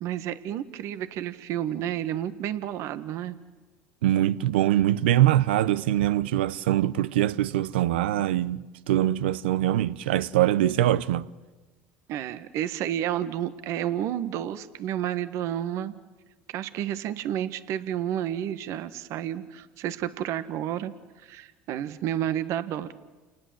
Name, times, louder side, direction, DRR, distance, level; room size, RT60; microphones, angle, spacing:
voice 1, 0.0-3.3 12.1-15.9 16.5-20.9 21.2-23.0, right 11 dB, 60° right, 1.5 m, -31 dB
voice 2, 4.0-11.3, right 13 dB, 85° right, 0.8 m, -23 dB
29.0 x 19.0 x 7.7 m
hypercardioid pair, 80°, 6 cm